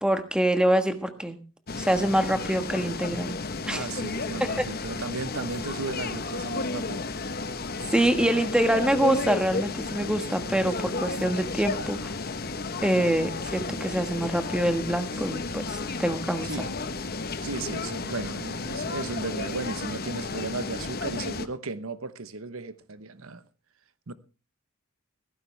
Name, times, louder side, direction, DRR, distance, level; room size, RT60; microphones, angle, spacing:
voice 1, 0.0-1.4 1.7-3.3 3.6-3.9 4.4-4.5 7.9-12.2 12.8-16.5, right 1 dB, 5° right, 1.4 m, -25 dB
sound 1, 1.7-21.5, left 3 dB, 45° left, 1.0 m, -33 dB
voice 2, 3.7-7.0 16.4-16.7 17.4-23.4 24.1-24.2, right 3 dB, 75° right, 1.0 m, -35 dB
16.5 x 14.5 x 3.3 m
head